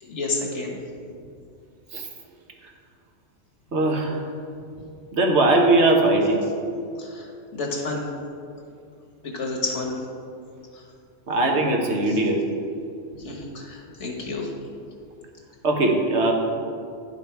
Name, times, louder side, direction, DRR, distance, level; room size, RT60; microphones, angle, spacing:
voice 1, 0.0-0.8 7.0-8.0 9.2-10.0 10.7-10.8 12.1-12.2 13.2-14.5, left 3 dB, 65° left, 0 dB, 1.6 m, -30 dB
voice 2, 3.7-4.2 5.1-6.4 11.3-12.4 15.6-16.3, right 2 dB, 60° right, 1 dB, 1.2 m, -20 dB
10.0 x 5.7 x 4.6 m, 2.5 s
omnidirectional pair, 1.3 m